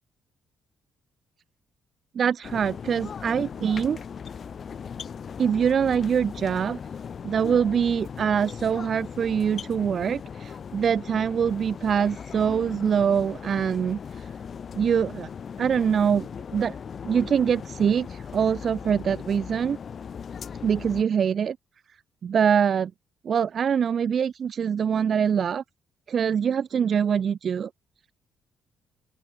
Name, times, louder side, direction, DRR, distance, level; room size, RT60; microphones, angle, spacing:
voice 1, 2.1-4.0 5.4-6.8 7.2-14.3 14.7-15.3 15.6-16.8 17.0-19.8 20.6-21.6 22.2-22.9 23.2-25.6 26.1-27.7, right 7 dB, 35° right, 6.3 m, -24 dB
sound 1, 2.4-21.0, left 7 dB, 35° left, 7.5 m, -38 dB
open air
cardioid pair, 175°, 0 cm